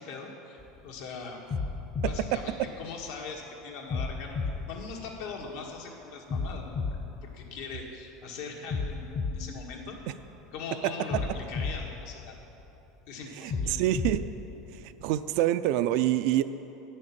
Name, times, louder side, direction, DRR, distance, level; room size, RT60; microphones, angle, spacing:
voice 1, 0.0-1.4 2.0-4.4 4.7-10.0 10.5-12.3 13.1-13.8, left 4 dB, 70° left, 0 dB, 1.6 m, -41 dB
sound 1, 0.6-0.9 1.5-3.3 3.9-5.7 6.3-8.1 8.7-10.5 11.1-12.9 13.5-15.3, left 4 dB, 20° left, 0.6 m, -35 dB
voice 2, 13.4-14.2 14.7-16.4, right 13 dB, 60° right, 12 dB, 0.4 m, -26 dB
9.3 x 6.4 x 7.4 m, 3.0 s
supercardioid pair, 145°, 0 cm